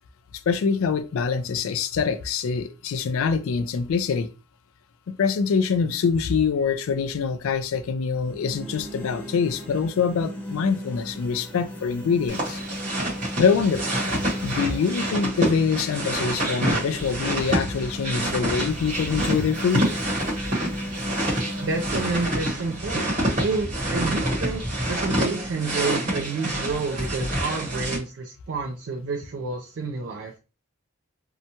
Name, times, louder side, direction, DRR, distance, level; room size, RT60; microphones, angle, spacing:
voice 1, 0.5-4.3 5.2-12.6 13.4-13.9 14.4-19.9, left 5 dB, 65° left, 0.3 m, -24 dB
sound 1, 8.1-24.1, equal, 5° left, 0.5 m, -37 dB
sound 2, 12.3-28.0, right 1 dB, 35° right, 0.9 m, -27 dB
voice 2, 21.6-23.1 23.4-30.4, right 4 dB, 55° right, 0.4 m, -29 dB
2.7 x 2.2 x 2.7 m
head